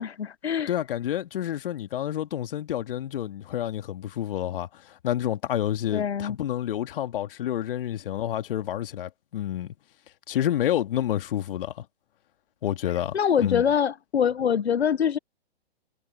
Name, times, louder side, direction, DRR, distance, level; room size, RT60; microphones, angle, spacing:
voice 1, 0.0-0.7 5.9-6.4 13.1-15.2, left 8 dB, 85° left, 0.8 m, -24 dB
voice 2, 0.7-9.7 10.3-11.9 12.6-13.6, left 11 dB, 60° left, 2.3 m, -29 dB
hypercardioid pair, 125°, 32 cm